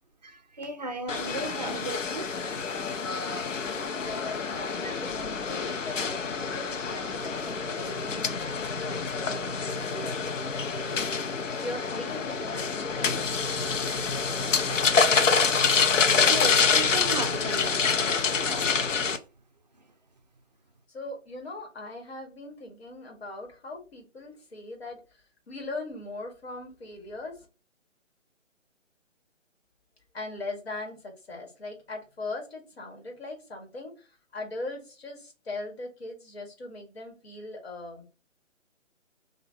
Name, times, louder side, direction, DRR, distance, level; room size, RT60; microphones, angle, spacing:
voice 1, 0.2-2.3 16.2-18.2 18.5-19.1, right 3 dB, 35° right, 0.5 m, -36 dB
sound 1, 1.1-19.2, left 5 dB, 75° left, 0.7 m, -27 dB
voice 2, 4.0-14.1 20.9-25.0 25.5-27.5 30.1-34.1 34.3-38.1, left 2 dB, 55° left, 1.7 m, -40 dB
5.6 x 2.6 x 2.7 m
figure-of-eight pair, 155°, 38 cm